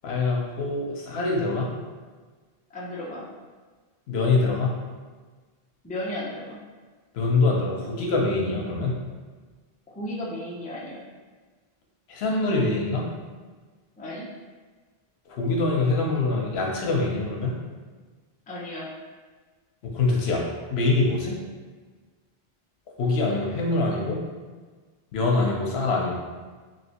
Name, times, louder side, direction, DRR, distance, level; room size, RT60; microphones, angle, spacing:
voice 1, 0.0-1.7 4.1-4.8 7.1-9.0 12.1-13.1 15.3-17.6 19.8-21.4 23.0-24.2 25.1-26.2, left 3 dB, 75° left, -1 dB, 0.9 m, -24 dB
voice 2, 2.7-3.3 5.8-6.6 10.0-11.0 14.0-14.2 18.5-18.9, left 1 dB, 10° left, -5 dB, 0.4 m, -34 dB
3.1 x 2.8 x 2.8 m, 1.4 s
omnidirectional pair, 1.1 m